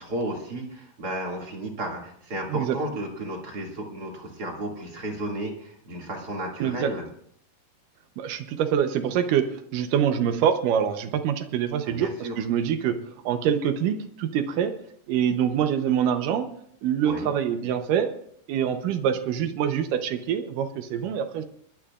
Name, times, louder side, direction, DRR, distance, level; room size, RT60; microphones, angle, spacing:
voice 1, 0.0-7.0 11.8-12.4 17.0-17.3, right 1 dB, 30° right, 0 dB, 2.0 m, -33 dB
voice 2, 6.6-6.9 8.2-13.0 13.3-14.7 15.1-16.5 16.8-18.1 18.5-21.4, right 8 dB, 75° right, 9 dB, 2.1 m, -25 dB
25.5 x 12.0 x 2.4 m, 0.66 s
omnidirectional pair, 4.6 m